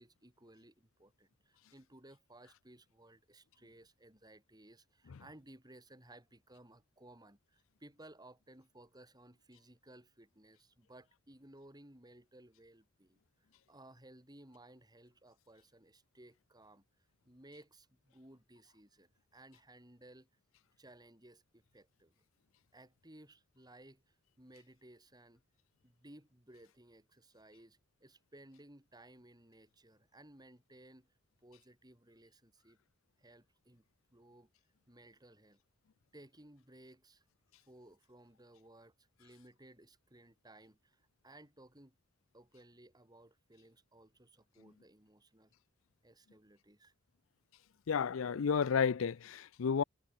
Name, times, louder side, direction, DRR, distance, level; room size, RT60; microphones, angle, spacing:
voice 1, 0.0-13.2 13.7-16.8 17.3-20.3 20.8-22.1 22.7-24.0 24.4-25.4 25.8-31.1 31.4-32.8 33.2-33.8 34.1-34.5 34.9-35.6 36.1-37.2 37.7-42.0 42.3-45.5 46.0-46.9, right 1 dB, 20° right, 7.2 m, -59 dB
voice 2, 47.9-49.8, left 6 dB, 85° left, 0.5 m, -31 dB
head